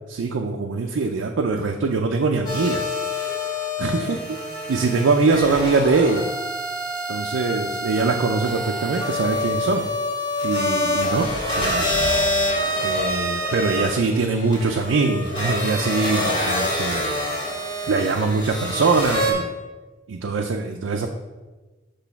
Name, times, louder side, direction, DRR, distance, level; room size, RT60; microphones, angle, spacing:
voice 1, 0.1-2.9 3.8-4.2 4.7-6.2 7.1-9.9 10.4-11.9 12.8-17.1 17.9-19.5 20.1-21.1, right 3 dB, 80° right, 2 dB, 0.4 m, -22 dB
sound 1, 2.5-19.3, left 1 dB, 25° left, 1.6 m, -26 dB
6.1 x 3.2 x 5.7 m, 1.2 s
head